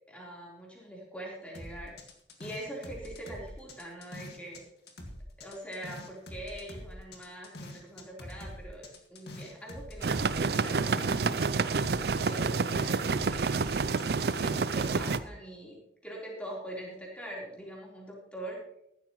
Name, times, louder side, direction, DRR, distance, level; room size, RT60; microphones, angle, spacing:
voice 1, 0.1-2.0 2.4-4.6 5.4-11.7 12.3-13.9 14.3-18.6, right 1 dB, 5° left, -4 dB, 3.9 m, -43 dB
sound 1, 1.5-4.6 4.9-11.5 11.7-15.2, left 1 dB, 65° left, 2.0 m, -45 dB
sound 2, 10.0-15.2, right 4 dB, 60° right, 0.5 m, -28 dB
15.0 x 12.5 x 3.1 m, 0.77 s
head